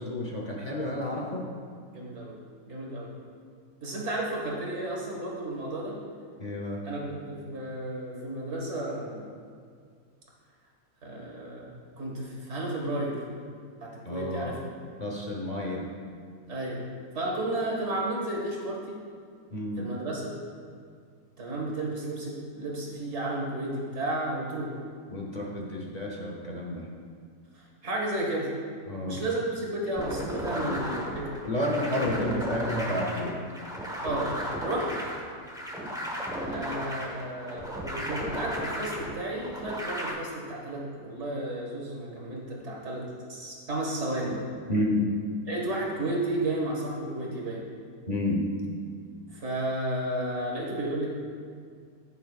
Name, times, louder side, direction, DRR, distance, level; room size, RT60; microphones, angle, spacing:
voice 1, 0.0-1.5 6.4-6.8 14.0-14.5 15.0-15.9 19.5-19.9 25.1-26.9 28.9-29.2 30.5-30.9 31.4-33.5 44.7-45.1 48.1-48.5, left 1 dB, 35° left, -1 dB, 0.8 m, -30 dB
voice 2, 1.9-2.3 2.7-3.1 3.8-6.0 6.8-9.3 11.0-11.7 12.0-13.2 13.8-14.6 16.5-16.8 17.1-19.0 19.8-20.3 21.4-24.7 27.5-28.5 29.0-31.4 32.1-32.4 34.0-34.9 36.5-43.0 43.3-44.4 45.5-47.6 49.3-51.1, right 1 dB, 45° right, -2 dB, 1.9 m, -32 dB
sound 1, 30.0-40.1, equal, 5° right, 0.8 m, -35 dB
15.0 x 6.7 x 2.4 m, 2.2 s
omnidirectional pair, 1.8 m